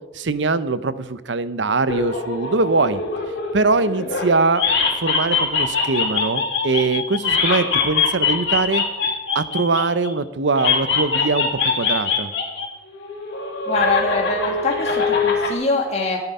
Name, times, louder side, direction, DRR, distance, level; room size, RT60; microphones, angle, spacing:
voice 1, 0.1-3.0 3.5-4.7 5.0-8.8 9.3-11.5 11.7-12.3, right 3 dB, 75° right, 14 dB, 0.8 m, -22 dB
sound 1, 1.9-4.3 4.5-10.1 10.6-12.7 12.9-15.5, left 5 dB, 70° left, 3.3 m, -22 dB
voice 2, 13.7-16.2, left 3 dB, 35° left, 0 dB, 1.9 m, -23 dB
14.0 x 9.7 x 5.5 m, 1.2 s
head